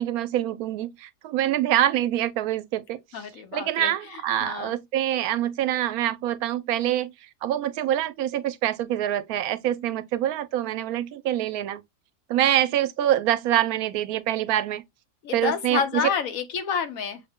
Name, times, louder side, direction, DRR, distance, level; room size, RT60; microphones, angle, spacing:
voice 1, 0.0-3.0 3.5-7.1 7.4-11.8 12.3-14.8 15.3-16.0, right 12 dB, 90° right, 1.1 m, -25 dB
voice 2, 3.1-4.8 15.2-17.2, left 7 dB, 70° left, 1.2 m, -29 dB
6.3 x 2.1 x 3.5 m
omnidirectional pair, 1.5 m